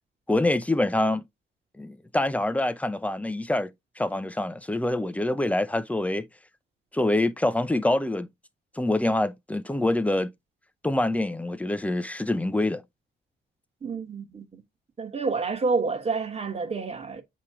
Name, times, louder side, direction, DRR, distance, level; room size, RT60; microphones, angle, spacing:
voice 1, 0.3-1.2 1.8-3.7 4.0-6.3 6.9-8.3 8.8-10.3 10.8-12.8, left 1 dB, 5° left, 0.6 m, -25 dB
voice 2, 13.8-14.6 15.0-17.2, right 4 dB, 30° right, 1.4 m, -29 dB
8.3 x 3.0 x 4.8 m
cardioid pair, 100°, 19 cm